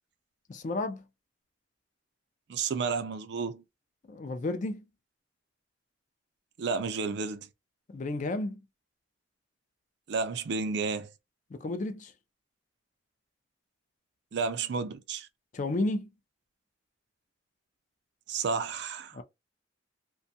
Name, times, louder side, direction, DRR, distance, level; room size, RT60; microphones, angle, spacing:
voice 1, 0.5-1.0 4.1-4.8 7.9-8.6 11.5-12.1 15.5-16.1 19.1-19.2, left 2 dB, 40° left, 0.4 m, -32 dB
voice 2, 2.5-3.6 6.6-7.5 10.1-11.1 14.3-15.3 18.3-19.2, right 5 dB, 60° right, 0.4 m, -31 dB
2.6 x 2.2 x 2.6 m
head